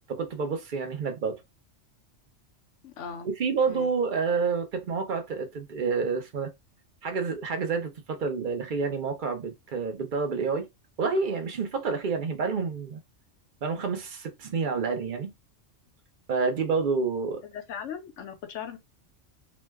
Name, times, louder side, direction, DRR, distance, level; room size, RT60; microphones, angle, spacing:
voice 1, 0.1-1.4 3.4-6.5 7.0-10.7 11.0-13.0 13.6-15.3 16.3-17.4, right 5 dB, 50° right, 0.7 m, -28 dB
voice 2, 2.8-3.3 3.7-3.9 17.4-18.8, left 7 dB, 75° left, 1.0 m, -38 dB
3.0 x 2.1 x 3.3 m
omnidirectional pair, 1.3 m